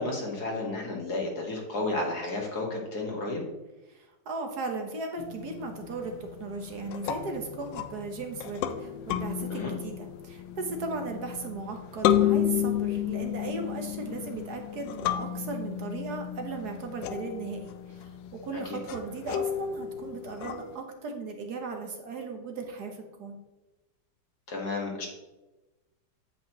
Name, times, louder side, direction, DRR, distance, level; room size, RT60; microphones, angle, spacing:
voice 1, 0.0-3.4 9.5-9.7 18.7-18.8 24.5-25.1, left 2 dB, 60° left, 0 dB, 2.2 m, -32 dB
voice 2, 3.9-23.4, right 3 dB, 60° right, 3 dB, 1.6 m, -37 dB
sound 1, 5.2-20.8, left 10 dB, 75° left, 1.3 m, -32 dB
8.9 x 8.3 x 3.0 m, 1.1 s
omnidirectional pair, 2.0 m